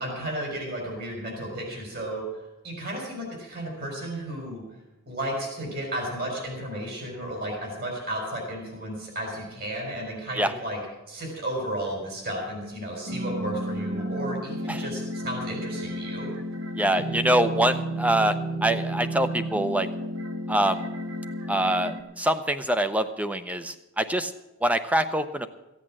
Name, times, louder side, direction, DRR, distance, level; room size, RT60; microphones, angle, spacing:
voice 1, 0.0-2.2 2.6-4.6 5.1-10.8 11.1-16.3, right 1 dB, 45° right, 0 dB, 4.3 m, -33 dB
sound 1, 13.1-22.0, right 1 dB, 70° right, 1.2 m, -32 dB
voice 2, 16.8-19.9 20.5-20.9 21.5-24.3 24.6-25.5, right 1 dB, 5° right, 11 dB, 0.6 m, -25 dB
15.0 x 8.3 x 7.5 m, 0.99 s
head